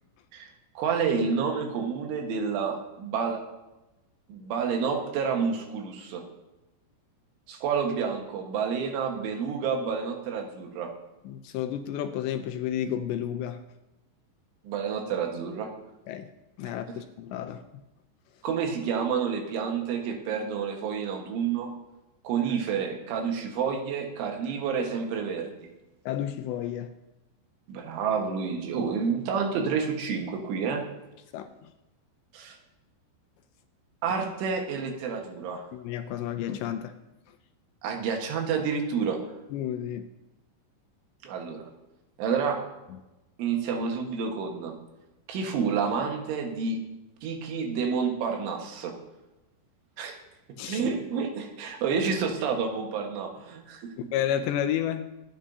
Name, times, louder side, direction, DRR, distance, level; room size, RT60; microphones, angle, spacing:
voice 1, 0.3-3.4 4.3-6.3 7.5-10.9 14.7-15.7 16.9-17.0 18.4-21.8 22.3-25.6 27.7-30.8 32.3-32.6 34.0-35.6 37.8-39.2 41.2-41.7 42.2-42.6 43.4-44.8 45.3-46.8 47.2-49.0 50.0-50.2 50.7-54.1, right 6 dB, 80° right, 2 dB, 3.9 m, -29 dB
voice 2, 11.3-13.6 16.1-16.3 16.6-17.6 26.1-26.9 31.3-31.5 35.7-37.0 39.5-40.1 50.6-50.8 54.0-55.1, left 10 dB, 80° left, 7 dB, 2.7 m, -31 dB
24.5 x 9.7 x 2.8 m, 1.0 s
omnidirectional pair, 5.4 m